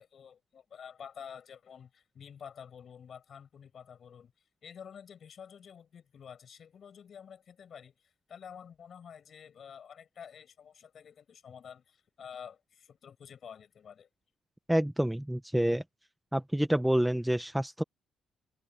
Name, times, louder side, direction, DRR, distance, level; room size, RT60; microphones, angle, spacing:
voice 1, 0.0-4.3 4.6-14.1, left 7 dB, 55° left, 7.0 m, -49 dB
voice 2, 14.7-15.8 16.3-17.8, right 1 dB, 5° right, 1.2 m, -28 dB
cardioid pair, 90°, 0 cm